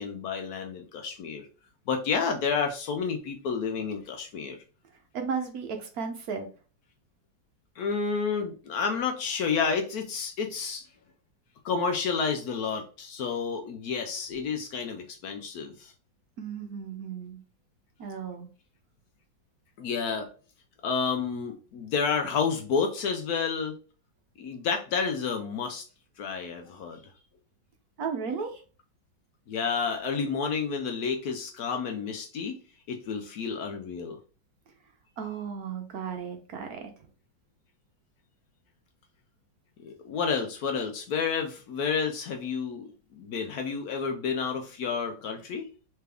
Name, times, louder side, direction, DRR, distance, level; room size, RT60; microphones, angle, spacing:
voice 1, 0.0-1.5 1.9-4.6 7.8-10.9 11.6-15.9 19.8-20.3 20.8-23.8 24.4-25.8 26.2-27.0 29.5-32.6 32.9-34.2 39.8-45.7, left 5 dB, 70° left, 4 dB, 1.0 m, -30 dB
voice 2, 5.1-6.5 16.4-17.4 18.0-18.5 28.0-28.6 35.2-36.9, right 6 dB, 65° right, 5 dB, 1.0 m, -34 dB
3.4 x 3.3 x 3.4 m, 0.37 s
omnidirectional pair, 1.9 m